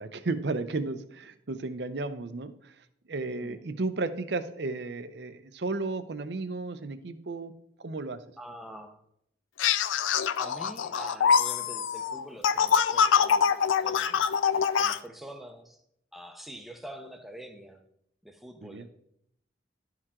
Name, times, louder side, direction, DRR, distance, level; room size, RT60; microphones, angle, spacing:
voice 1, 0.0-2.7 3.1-7.5 7.8-8.2 18.6-18.9, right 3 dB, 60° right, 11 dB, 0.6 m, -33 dB
voice 2, 3.2-3.6 8.4-9.0 10.4-13.5 13.8-14.3 14.7-15.8 16.1-17.8 18.2-18.9, right 1 dB, ahead, 5 dB, 0.6 m, -45 dB
sound 1, 9.6-15.0, left 7 dB, 85° left, 0.4 m, -24 dB
12.0 x 4.6 x 3.7 m, 0.74 s
head